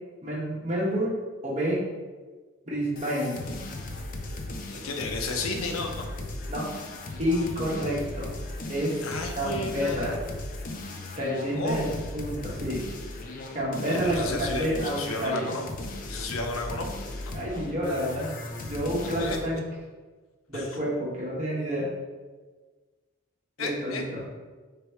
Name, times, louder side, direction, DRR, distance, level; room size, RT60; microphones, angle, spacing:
voice 1, 0.2-1.8 2.7-3.5 6.5-6.6 7.2-8.3 8.7-9.0 9.3-10.1 11.2-12.9 13.5-15.5 17.3-18.3 18.6-19.6 20.5-21.9 23.6-24.2, equal, 35° right, -6 dB, 1.1 m, -29 dB
sound 1, 3.0-19.5, left 2 dB, 40° left, 0.4 m, -37 dB
voice 2, 4.7-6.1 9.0-10.2 11.5-11.9 13.9-15.6 16.1-16.9 17.2-17.3 19.2-19.4 20.5-20.8 23.6-24.0, left 2 dB, 85° left, 3 dB, 0.6 m, -32 dB
3.4 x 3.1 x 4.5 m, 1.4 s
head